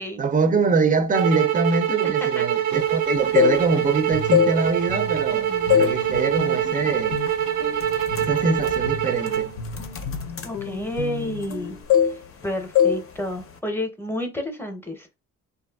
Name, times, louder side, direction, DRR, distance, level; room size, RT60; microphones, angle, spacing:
voice 1, 0.0-7.2 8.2-9.5, right 4 dB, 30° right, 0.4 m, -24 dB
sound 1, 1.1-9.5, right 10 dB, 80° right, 0.5 m, -24 dB
voice 2, 2.0-2.4 5.3-5.8 10.4-11.8 12.0-15.1, left 1 dB, 5° left, 0.7 m, -31 dB
sound 2, 3.1-3.9 4.2-5.3 5.7-6.0 6.4-6.7 7.3-7.4 7.8-11.6 11.9-12.5 12.8-13.0 13.3-13.6, left 9 dB, 50° left, 0.6 m, -22 dB
Guitar, 3.9-11.8, left 4 dB, 90° left, 0.6 m, -36 dB
2.9 x 2.4 x 2.2 m
cardioid pair, 90°, 30 cm